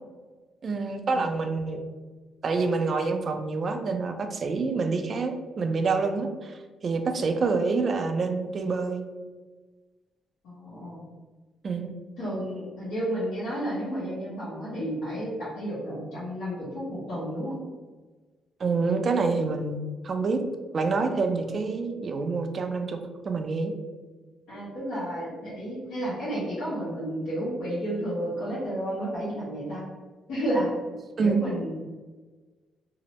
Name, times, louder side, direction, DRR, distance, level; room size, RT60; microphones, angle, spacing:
voice 1, 0.6-1.8 2.4-6.6 6.8-9.0 11.6-11.9 18.6-19.8 20.0-20.4 20.7-23.0 23.2-23.7 31.2-31.4, right 4 dB, 45° right, 6 dB, 0.3 m, -27 dB
voice 2, 10.4-11.0 12.2-17.5 21.8-21.9 24.5-29.8 30.3-30.7 31.2-31.7, right 1 dB, 85° left, -12 dB, 1.0 m, -31 dB
2.7 x 2.1 x 2.9 m, 1.3 s
cardioid pair, 90°, 0 cm